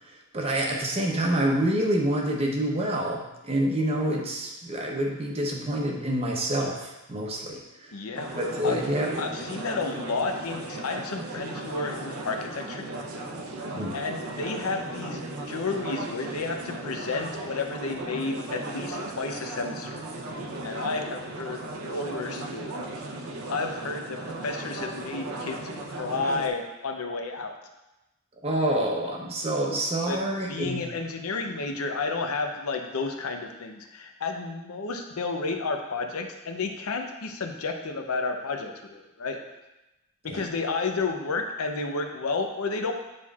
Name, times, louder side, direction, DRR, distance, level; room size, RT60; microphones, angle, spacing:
voice 1, 0.3-7.6 8.4-9.2 13.8-13.9 28.4-30.8 40.3-40.4, right 1 dB, 30° right, 0 dB, 0.7 m, -27 dB
voice 2, 7.9-8.3 8.6-8.8 9.2-12.9 13.9-15.2 15.5-20.0 20.6-21.6 21.8-22.8 23.5-27.5 30.1-30.2 30.5-39.4 40.2-42.9, left 3 dB, 85° left, 4 dB, 0.7 m, -31 dB
sound 1, 8.2-26.5, right 2 dB, 80° right, 0.7 m, -36 dB
8.9 x 4.4 x 2.4 m, 0.99 s
head